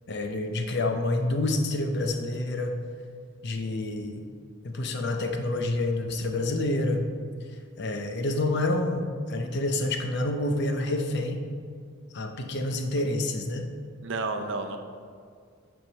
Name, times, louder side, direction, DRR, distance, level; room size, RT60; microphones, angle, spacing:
voice 1, 0.1-2.8 3.4-4.3 4.6-7.0 7.8-11.4 12.1-13.7, left 2 dB, 50° left, 4 dB, 0.7 m, -28 dB
voice 2, 14.0-14.8, right 3 dB, 60° right, 5 dB, 0.6 m, -31 dB
8.4 x 3.6 x 6.2 m, 2.1 s
head